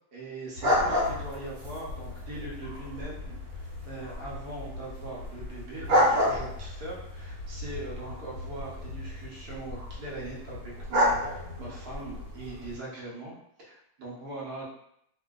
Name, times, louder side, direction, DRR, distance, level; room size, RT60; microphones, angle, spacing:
voice 1, 0.1-13.3 13.6-14.6, right 2 dB, 60° right, -5 dB, 1.3 m, -41 dB
sound 1, 0.6-12.8, left 1 dB, 75° right, 1.5 m, -31 dB
3.0 x 2.7 x 2.3 m, 0.73 s
omnidirectional pair, 2.1 m